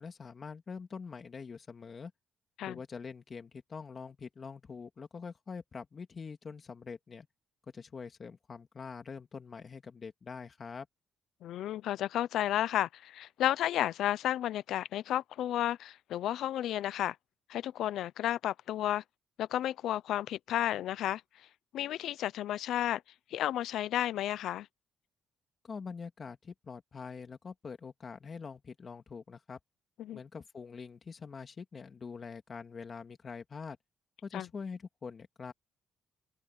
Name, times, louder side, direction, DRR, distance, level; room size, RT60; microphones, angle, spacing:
voice 1, 0.0-2.1 2.6-7.3 7.7-10.9 25.6-29.6 30.1-33.8 34.2-35.5, left 5 dB, 40° left, 2.5 m, -44 dB
voice 2, 11.4-17.2 17.5-19.0 19.4-21.2 21.7-23.0 23.3-24.7 30.0-30.2 34.3-34.5, left 12 dB, 80° left, 0.6 m, -32 dB
cardioid pair, 90°, 0 cm